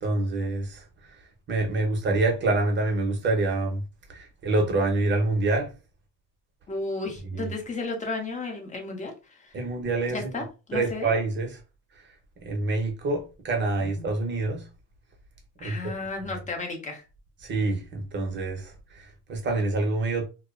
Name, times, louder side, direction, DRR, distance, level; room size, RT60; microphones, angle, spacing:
voice 1, 0.0-1.2 1.5-3.8 4.1-5.7 7.3-7.5 9.5-10.4 10.7-11.6 12.4-14.7 15.6-15.8 17.4-20.3, right 2 dB, 30° right, 0.7 m, -26 dB
voice 2, 6.7-9.6 10.1-11.1 15.6-17.0, left 3 dB, 20° left, 0.7 m, -33 dB
2.4 x 2.1 x 2.4 m
cardioid pair, 125°, 40 cm